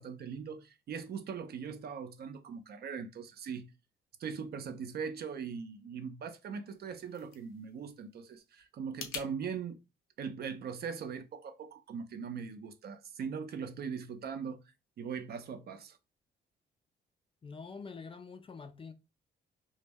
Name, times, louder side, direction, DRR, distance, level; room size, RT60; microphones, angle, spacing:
voice 1, 0.0-3.7 4.2-9.8 10.2-14.6 15.0-16.0, right 6 dB, 55° right, 0.5 m, -40 dB
sound 1, 6.7-9.3, left 6 dB, 85° left, 0.6 m, -47 dB
voice 2, 17.4-18.9, left 5 dB, 25° left, 0.3 m, -46 dB
2.1 x 2.0 x 3.4 m
cardioid pair, 90°, 20 cm